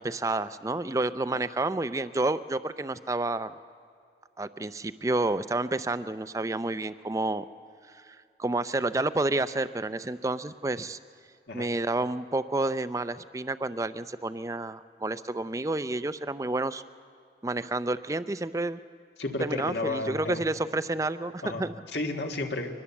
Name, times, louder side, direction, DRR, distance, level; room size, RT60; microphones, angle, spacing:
voice 1, 0.0-3.5 4.4-7.4 7.9-11.0 11.5-16.8 17.4-18.8 19.4-21.7, right 2 dB, 20° right, 13 dB, 0.4 m, -30 dB
voice 2, 19.2-20.4 21.4-22.7, left 2 dB, 75° left, 3 dB, 1.8 m, -32 dB
23.5 x 20.0 x 7.1 m, 2.4 s
head